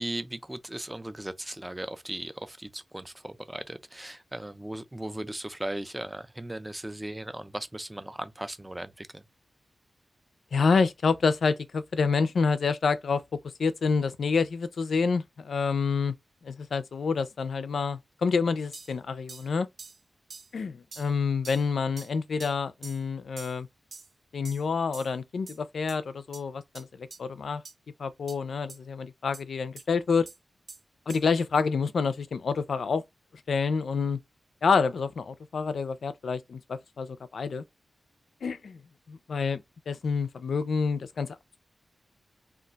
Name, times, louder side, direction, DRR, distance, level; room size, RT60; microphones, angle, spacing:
voice 1, 0.0-9.2, right 1 dB, 10° right, 0.4 m, -37 dB
voice 2, 10.5-13.2 13.6-16.1 16.4-19.7 20.5-23.7 24.3-27.6 28.0-30.3 31.1-33.0 33.5-34.2 34.6-37.6 38.4-38.8 39.1-41.3, left 5 dB, 75° left, 0.4 m, -28 dB
sound 1, 18.7-18.9 19.3-19.5 19.8-20.0 20.3-20.5 20.9-21.1 21.4-21.6 22.0-22.1 22.4-22.5 22.8-23.0 23.4-23.6 23.9-24.1 24.4-24.6 24.9-25.1 25.5-25.6 25.9-26.0 26.3-26.4 26.7-26.8 27.1-27.2 27.6-27.7 28.3-28.4 28.7-28.8 29.3-29.4 29.8-29.9 30.3-30.4 30.7-30.8 31.1-31.2, right 4 dB, 55° right, 0.7 m, -45 dB
2.4 x 2.2 x 3.8 m
wide cardioid pair, 130°, 0 cm